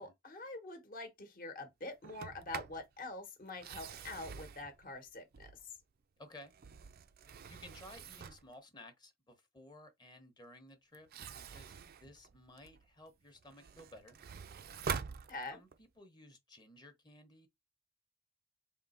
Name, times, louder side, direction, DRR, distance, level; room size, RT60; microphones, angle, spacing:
voice 1, 0.0-5.7 15.3-15.6, left 2 dB, 45° left, 1.1 m, -45 dB
Sliding door, 2.0-2.8 3.5-5.8 6.4-8.5 10.9-12.9 13.3-15.8, right 6 dB, 50° right, 0.4 m, -45 dB
voice 2, 6.2-6.5 7.5-11.1 11.5-14.2 15.5-17.5, left 1 dB, 20° left, 0.9 m, -56 dB
3.7 x 2.8 x 4.2 m
head